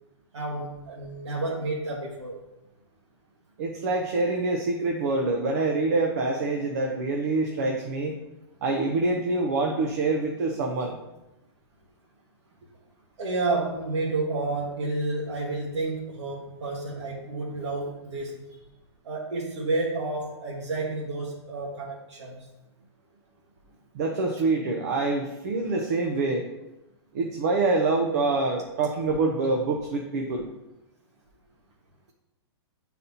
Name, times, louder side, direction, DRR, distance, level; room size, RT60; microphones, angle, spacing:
voice 1, 0.3-2.4 5.4-5.5 13.2-18.4 19.0-22.5, right 2 dB, 80° right, -4 dB, 1.3 m, -30 dB
voice 2, 3.6-8.2 8.6-11.0 23.9-26.4 27.1-30.5, right 3 dB, 35° right, 2 dB, 0.6 m, -26 dB
9.3 x 4.1 x 2.7 m, 0.96 s
hypercardioid pair, 170°, 14 cm